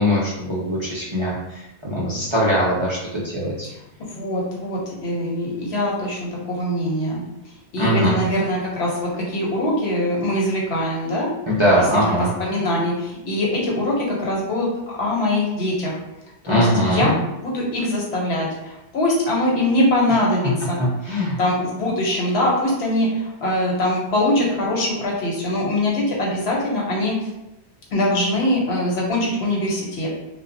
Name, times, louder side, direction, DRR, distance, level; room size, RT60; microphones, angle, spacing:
voice 1, 0.0-3.7 7.8-8.2 11.5-12.3 16.5-17.1 21.0-21.4, equal, 40° right, -8 dB, 0.4 m, -21 dB
voice 2, 4.1-7.2 7.7-11.3 12.4-14.7 15.0-15.9 16.4-17.1 17.4-20.5 21.4-27.1 27.9-30.1, left 1 dB, 70° left, -3 dB, 1.0 m, -22 dB
2.1 x 2.0 x 3.8 m, 0.92 s
omnidirectional pair, 1.1 m